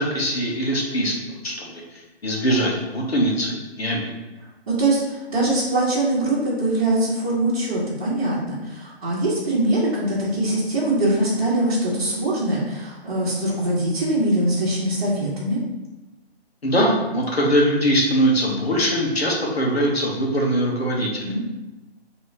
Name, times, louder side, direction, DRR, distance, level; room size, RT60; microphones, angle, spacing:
voice 1, 0.0-1.8 2.2-4.1 16.6-21.2, equal, 70° left, -1 dB, 1.3 m, -22 dB
voice 2, 4.7-15.6 21.2-21.4, right 1 dB, 35° right, -10 dB, 1.2 m, -22 dB
5.0 x 3.1 x 3.2 m, 1.0 s
figure-of-eight pair, 135°, 32 cm